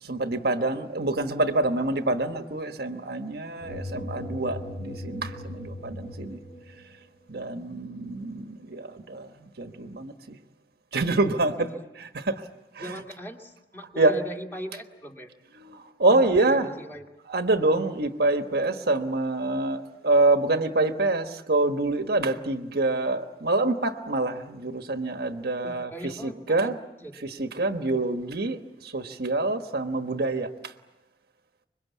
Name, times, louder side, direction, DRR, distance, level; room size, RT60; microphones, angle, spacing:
voice 1, 0.0-6.4 7.3-10.4 10.9-11.7 12.2-12.4 12.7-12.9 14.0-14.2 15.6-16.7 17.3-25.9 26.2-26.8 27.2-30.7, right 2 dB, 60° right, 1.3 m, -26 dB
sound 1, 3.6-6.8, left 1 dB, 40° left, 2.9 m, -38 dB
voice 2, 7.4-8.0 11.6-11.8 12.8-15.3 16.0-17.1 25.6-26.7 27.0-27.2, equal, 15° left, 2.2 m, -40 dB
25.5 x 22.5 x 8.3 m
head